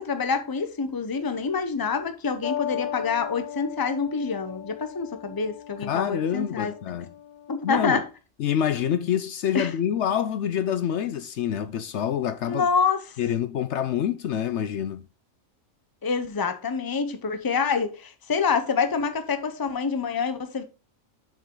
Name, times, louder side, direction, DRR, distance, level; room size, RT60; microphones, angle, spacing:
voice 1, 0.0-6.7 7.5-8.0 9.5-9.7 12.4-13.2 16.0-20.6, left 5 dB, 20° left, 0.7 m, -27 dB
sound 1, 2.4-7.6, left 10 dB, 40° left, 0.8 m, -37 dB
voice 2, 5.8-7.1 7.6-8.0 8.4-12.6 13.2-15.0, left 9 dB, 70° left, 0.9 m, -26 dB
7.4 x 5.6 x 3.8 m
omnidirectional pair, 1.3 m